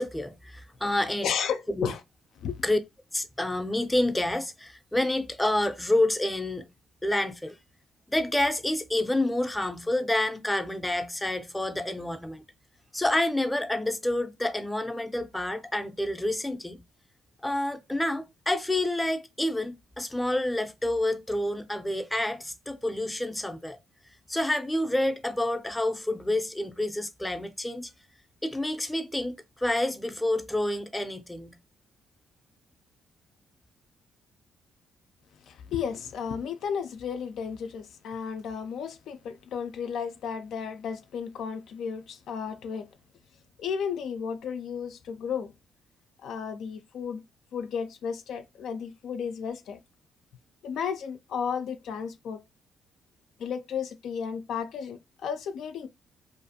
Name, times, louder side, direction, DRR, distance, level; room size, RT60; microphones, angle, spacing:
voice 1, 0.0-1.5 1.7-1.9 2.6-2.8 3.1-6.7 7.0-7.6 8.1-12.4 12.9-16.8 17.4-23.8 24.3-27.9 28.4-31.6, left 1 dB, 10° left, 0.4 m, -28 dB
voice 2, 1.2-2.0 2.4-2.6 35.5-42.9 43.6-45.5 46.2-47.2 47.5-49.8 50.6-52.4 53.4-55.9, left 7 dB, 75° left, 0.3 m, -33 dB
2.5 x 2.3 x 2.6 m
cardioid pair, 90°, 0 cm